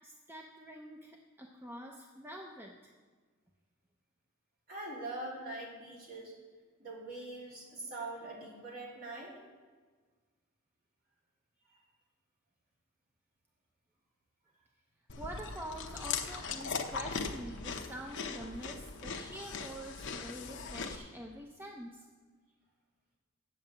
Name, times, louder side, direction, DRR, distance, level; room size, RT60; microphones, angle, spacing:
voice 1, 0.0-2.9 7.7-7.8 15.2-22.1, equal, 10° right, 1 dB, 0.7 m, -46 dB
voice 2, 4.7-6.3 6.8-9.4, right 2 dB, 45° right, -4 dB, 3.1 m, -43 dB
Chewing mastication, 15.1-21.0, left 5 dB, 60° left, 0.8 m, -39 dB
9.2 x 7.5 x 7.7 m, 1.5 s
head